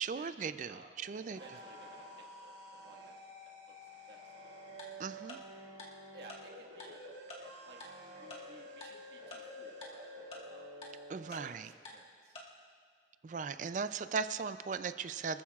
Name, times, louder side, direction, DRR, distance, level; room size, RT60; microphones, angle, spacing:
voice 1, 0.0-1.4 5.0-5.4 11.1-11.7 13.2-15.4, right 5 dB, 45° right, 12 dB, 0.3 m, -38 dB
sound 1, 1.0-11.4, equal, 80° right, 2.4 m, -50 dB
voice 2, 1.4-3.2 3.4-3.6 4.1-4.5 5.1-5.3 5.7-5.8 6.1-7.0 7.6-7.8 8.2-10.1 10.4-10.7 11.3-12.4, right 2 dB, 65° right, -1 dB, 1.7 m, -57 dB
Tick-tock, 4.8-4.9 5.3-5.4 5.8-5.9 6.3-6.4 6.8-6.9 7.3-7.4 7.8-7.9 8.3-8.4 8.8-8.9 9.3-9.4 9.8-9.9 10.3-10.4 10.8-10.9 11.3-11.4 11.9-12.0 12.4-12.5, left 2 dB, 35° left, 2.0 m, -47 dB
25.0 x 14.5 x 2.4 m, 2.1 s
head